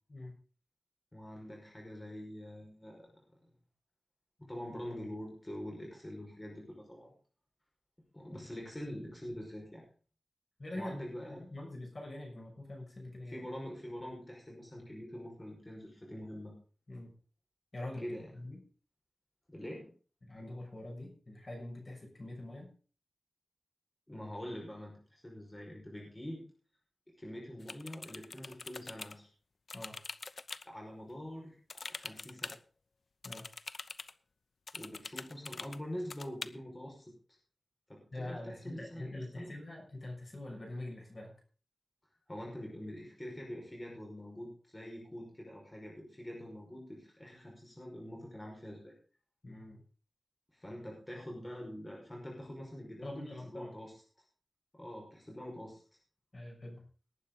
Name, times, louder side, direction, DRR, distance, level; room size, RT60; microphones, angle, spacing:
voice 1, 1.1-3.1 4.4-7.1 8.1-9.8 10.7-11.4 13.3-16.5 18.0-18.3 19.5-19.9 24.1-26.4 27.2-29.3 30.6-32.5 34.7-37.1 37.9-39.5 42.3-48.9 50.5-53.9 54.7-55.8, equal, 20° left, -1 dB, 5.3 m, -45 dB
voice 2, 10.6-11.0 11.3-13.5 16.9-17.1 17.7-18.6 20.2-22.7 29.7-30.0 33.2-33.5 38.1-41.3 49.4-49.8 53.0-53.7 56.3-56.9, left 1 dB, 40° left, 1 dB, 6.3 m, -44 dB
sound 1, 27.6-29.2 29.7-30.6 31.7-32.6 33.2-34.1 34.7-35.8 36.1-36.5, left 4 dB, 60° left, 0.7 m, -44 dB
19.0 x 9.5 x 3.9 m, 0.39 s
wide cardioid pair, 115°, 0 cm